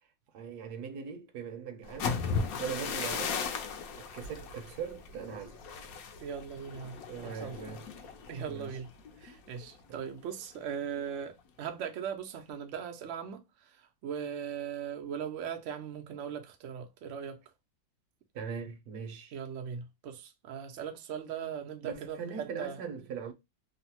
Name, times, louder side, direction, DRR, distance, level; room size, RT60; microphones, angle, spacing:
voice 1, 0.3-2.2 2.6-3.4 4.0-5.6 7.1-7.8 8.5-8.7 9.9-10.0 18.3-19.4 21.8-23.3, right 6 dB, 70° right, 1.0 m, -40 dB
sound 1, 1.8-9.7 10.1-10.4 10.7-11.1, left 5 dB, 70° left, 0.8 m, -37 dB
voice 2, 6.2-7.6 8.3-8.9 9.2-17.4 19.3-22.8, right 8 dB, 90° right, 0.6 m, -39 dB
3.0 x 2.0 x 2.8 m
omnidirectional pair, 2.0 m